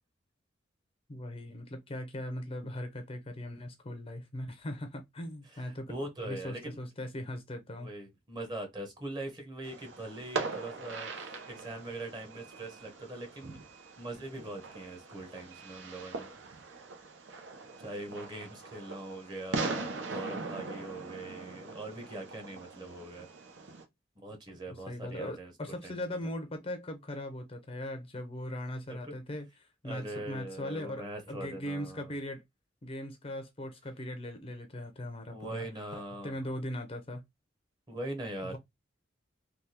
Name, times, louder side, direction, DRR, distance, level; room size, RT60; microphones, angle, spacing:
voice 1, 1.1-5.9 6.2-7.9 24.7-32.4 32.8-35.7 36.2-37.2, left 1 dB, 30° left, 0.6 m, -39 dB
voice 2, 5.5-6.8 7.8-13.6 14.0-16.7 17.8-23.3 24.2-25.9 28.9-29.1 29.8-32.1 35.3-36.4 37.9-38.6, right 1 dB, 25° right, 1.0 m, -42 dB
Fireworks, 9.6-23.8, right 3 dB, 85° right, 0.7 m, -41 dB
3.4 x 2.3 x 2.8 m
head